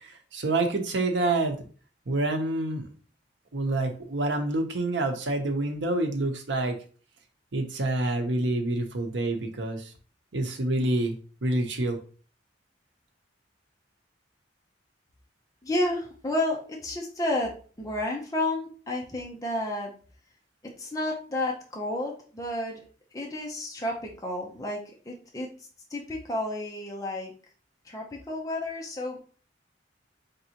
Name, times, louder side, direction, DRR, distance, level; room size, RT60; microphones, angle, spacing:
voice 1, 0.0-1.6 2.1-2.9 3.5-6.7 7.5-9.8 10.3-11.2 11.4-12.0, right 2 dB, 80° right, 5 dB, 0.8 m, -27 dB
voice 2, 15.6-19.9 20.8-22.8 23.1-25.5 25.9-27.3 27.8-29.2, left 1 dB, 20° left, -1 dB, 0.6 m, -31 dB
4.0 x 3.4 x 2.8 m, 0.40 s
head